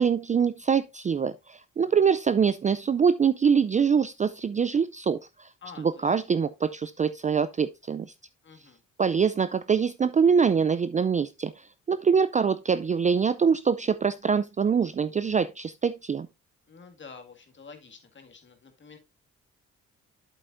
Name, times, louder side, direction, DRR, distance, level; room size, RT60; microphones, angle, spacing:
voice 1, 0.0-5.5 5.8-8.1 9.0-11.5 11.9-16.3, right 6 dB, 25° right, 0.4 m, -24 dB
voice 2, 5.6-6.0 8.4-8.8 16.7-19.0, left 5 dB, 40° left, 1.9 m, -48 dB
7.9 x 7.8 x 2.5 m
cardioid pair, 90°, 30 cm